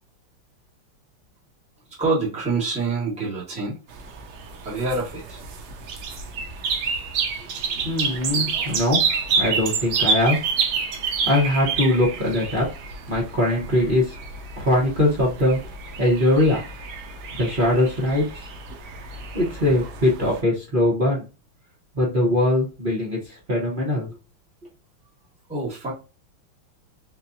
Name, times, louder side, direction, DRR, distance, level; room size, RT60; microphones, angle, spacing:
voice 1, 2.0-3.8 4.6-5.4 18.8-19.4 25.5-25.9, right 3 dB, 5° right, -6 dB, 1.0 m, -27 dB
sound 1, 3.9-20.4, right 5 dB, 70° right, 1.0 m, -29 dB
voice 2, 7.8-9.0 9.4-10.4 11.3-12.6 13.1-14.2 14.6-15.6 16.0-16.6 17.3-18.4 19.3-21.3 21.9-24.1, left 1 dB, 40° right, -4 dB, 0.8 m, -21 dB
4.3 x 2.4 x 2.6 m, 0.31 s
omnidirectional pair, 2.3 m